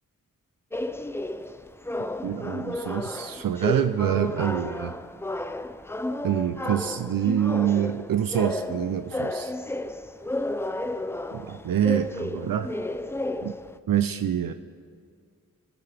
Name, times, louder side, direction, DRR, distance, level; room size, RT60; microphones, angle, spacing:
sound 1, 0.7-13.8, left 1 dB, 5° left, 0.4 m, -32 dB
voice 1, 2.2-5.0 6.2-9.5 11.3-12.8 13.4-13.5 13.9-14.5, right 9 dB, 75° right, 10 dB, 0.6 m, -26 dB
18.0 x 10.0 x 3.5 m, 2.1 s
cardioid pair, 60°, 34 cm